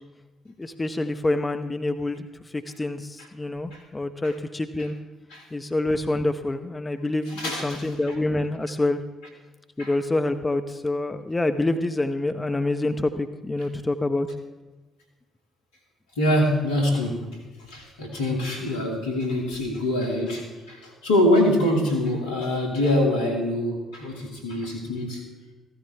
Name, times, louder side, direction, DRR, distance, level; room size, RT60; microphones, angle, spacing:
voice 1, 0.6-2.3 2.5-5.0 5.5-9.0 9.8-14.3, left 2 dB, 20° left, 8 dB, 0.8 m, -26 dB
voice 2, 7.3-7.9 9.8-9.9 16.2-17.3 17.6-25.3, left 1 dB, 80° left, 1 dB, 2.2 m, -24 dB
15.0 x 14.0 x 3.4 m, 1.2 s
hypercardioid pair, 45°, 0 cm